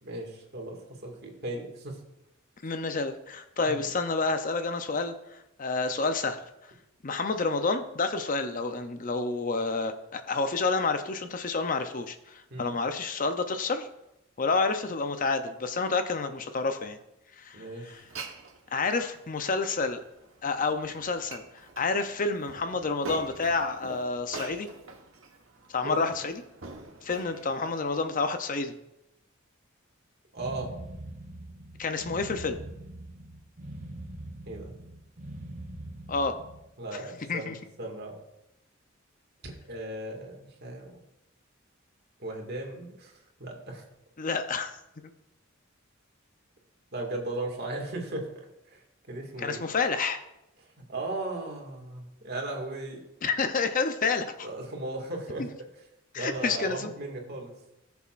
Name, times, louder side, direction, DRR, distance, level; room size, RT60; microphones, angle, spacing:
voice 1, 0.0-2.0 3.6-3.8 12.5-12.7 17.5-18.0 25.8-26.1 30.3-30.7 34.5-34.7 36.8-37.5 37.8-38.2 39.4-41.0 42.2-43.1 43.4-43.9 46.9-48.3 48.7-49.6 50.8-53.0 54.4-55.4 56.2-57.5, right 2 dB, 50° right, 1 dB, 2.1 m, -37 dB
voice 2, 2.6-6.7 7.0-13.9 14.4-17.0 17.3-18.0 18.7-20.0 20.4-24.7 25.7-26.4 27.0-28.7 31.8-32.6 36.1-36.4 36.9-37.0 37.3-37.6 44.2-44.8 45.0-45.1 49.4-50.2 53.2-54.5 55.4-55.5 56.1-56.9, left 4 dB, 40° left, 8 dB, 0.6 m, -29 dB
Glass, 17.9-27.9, right 3 dB, 75° right, 1.2 m, -45 dB
sound 1, 30.4-36.7, right 1 dB, 35° right, 0.9 m, -42 dB
18.0 x 7.0 x 2.5 m, 0.87 s
head